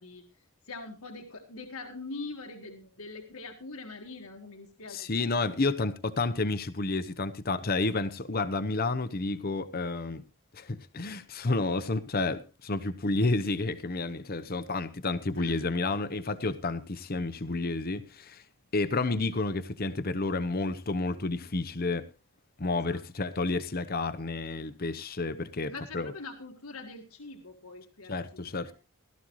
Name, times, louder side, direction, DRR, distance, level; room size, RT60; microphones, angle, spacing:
voice 1, 0.0-5.3 15.4-15.6 22.7-23.3 25.7-28.7, left 3 dB, 75° left, 1.7 m, -43 dB
voice 2, 4.9-10.2 10.5-18.4 18.7-22.1 22.6-26.1 28.1-28.7, left 3 dB, 45° left, 0.9 m, -30 dB
17.0 x 13.0 x 3.1 m
head